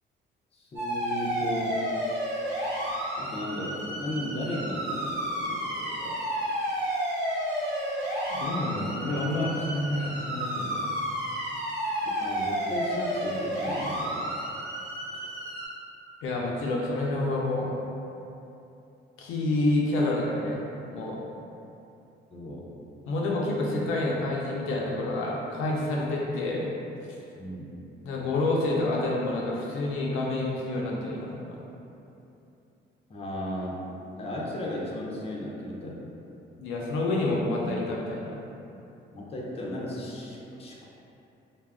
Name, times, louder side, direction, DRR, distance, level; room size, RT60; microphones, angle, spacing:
voice 1, 0.5-1.9 3.2-6.2 12.2-14.2 22.3-22.7 27.4-27.7 33.1-33.8 34.2-36.0 39.1-40.8, left 1 dB, 30° left, -4 dB, 0.5 m, -35 dB
sound 1, 0.8-15.7, equal, 65° right, 0.9 m, -31 dB
voice 2, 8.3-10.8 16.2-17.7 19.2-21.2 23.1-26.7 28.0-31.6 36.6-38.4, left 2 dB, 90° left, -3 dB, 0.4 m, -28 dB
2.2 x 2.0 x 3.4 m, 2.8 s
cardioid pair, 90°, 20 cm